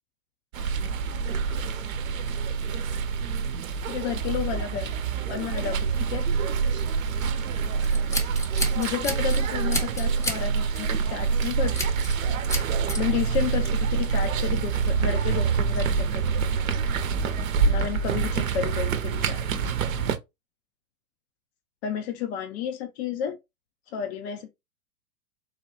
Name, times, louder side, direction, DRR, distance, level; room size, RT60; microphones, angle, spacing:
sound 1, 0.5-20.2, right 5 dB, 70° right, 0.7 m, -26 dB
voice 1, 3.9-4.9 5.3-6.3 8.7-11.8 13.0-16.2 17.6-19.4 21.8-23.4 23.9-24.5, left 9 dB, 50° left, 0.7 m, -31 dB
Scissors, 7.8-9.4 9.7-10.4 10.7-11.0 11.7-12.2 12.5-13.0, left 1 dB, 5° left, 0.8 m, -31 dB
4.1 x 2.2 x 3.0 m
figure-of-eight pair, 100°, 43 cm